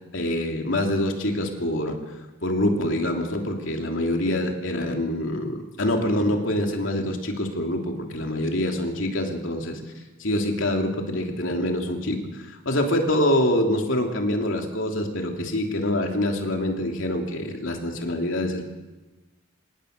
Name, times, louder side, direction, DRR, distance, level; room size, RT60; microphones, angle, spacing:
voice 1, 0.1-2.0 2.4-9.8 10.2-18.6, left 1 dB, 65° left, 2 dB, 3.1 m, -25 dB
26.5 x 18.5 x 6.7 m, 1.2 s
head